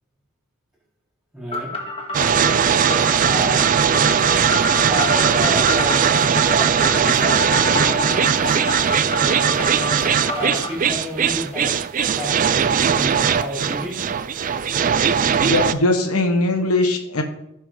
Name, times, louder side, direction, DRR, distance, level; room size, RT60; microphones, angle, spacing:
voice 1, 1.3-1.7 3.2-3.7 4.9-8.6 9.1-11.7 12.1-14.0, equal, 5° right, -5 dB, 4.1 m, -30 dB
sound 1, 1.5-10.7, left 2 dB, 25° left, 1.8 m, -28 dB
sound 2, 2.1-15.7, right 7 dB, 35° right, 0.4 m, -19 dB
voice 2, 15.3-17.2, left 2 dB, 90° left, 4 dB, 1.4 m, -21 dB
15.0 x 6.1 x 3.8 m, 0.82 s
head